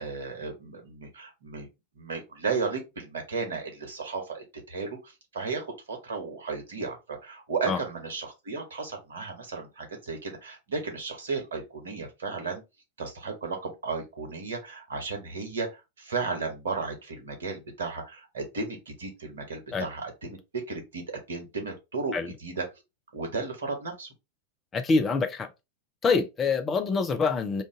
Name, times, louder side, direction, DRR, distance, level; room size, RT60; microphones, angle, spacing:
voice 1, 0.0-1.7 2.0-12.6 13.0-22.6 23.1-24.1, right 4 dB, 65° right, 1.1 m, -34 dB
voice 2, 24.7-25.5 26.0-27.6, left 4 dB, 20° left, 0.6 m, -25 dB
2.6 x 2.4 x 3.7 m
figure-of-eight pair, 90°, 0 cm